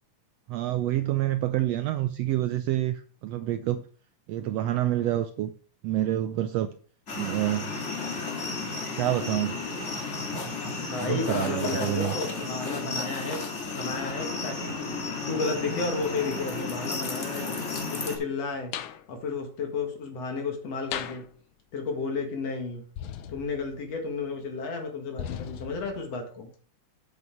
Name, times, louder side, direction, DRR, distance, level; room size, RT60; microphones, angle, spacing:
voice 1, 0.5-3.8 4.3-5.5 5.8-6.7 7.2-7.7 9.0-9.6 11.0-12.1, right 13 dB, 85° right, 1.5 m, -27 dB
sound 1, 7.1-18.2, left 3 dB, 25° left, 1.8 m, -33 dB
voice 2, 10.8-13.4 13.7-14.7 15.3-17.5 17.9-18.7 19.1-21.2 21.7-22.8 23.3-26.5, left 4 dB, 60° left, 2.9 m, -32 dB
sound 2, 18.7-19.0 20.9-21.3 23.0-24.0 25.2-26.1, left 10 dB, 85° left, 2.2 m, -37 dB
8.3 x 7.4 x 4.9 m
omnidirectional pair, 3.4 m